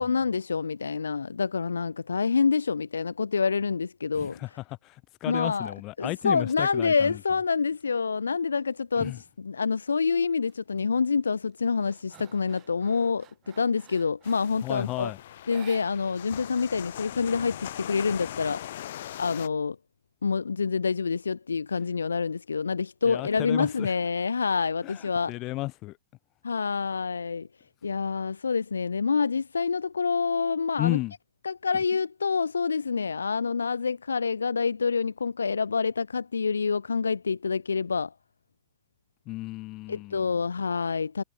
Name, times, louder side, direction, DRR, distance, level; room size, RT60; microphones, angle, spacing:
voice 1, 0.0-4.6 5.2-15.1 15.5-18.6 19.2-19.8 20.2-25.4 26.4-27.5 27.8-31.0 31.4-38.1 39.9-41.2, left 5 dB, 75° left, 0.4 m, -27 dB
voice 2, 4.2-4.5 4.8-4.9 5.2-7.2 9.0-9.2 14.6-15.2 23.1-23.9 24.8-24.9 25.3-25.9 30.8-31.1 39.3-40.3, left 19 dB, 40° left, 1.7 m, -32 dB
sound 1, 10.5-10.8 11.2-14.7 15.4-16.4 16.6-16.7 17.1-18.1, right 15 dB, 35° right, 5.2 m, -54 dB
sound 2, 14.2-19.5, left 12 dB, 60° left, 5.8 m, -40 dB
figure-of-eight pair, 90°, 0 cm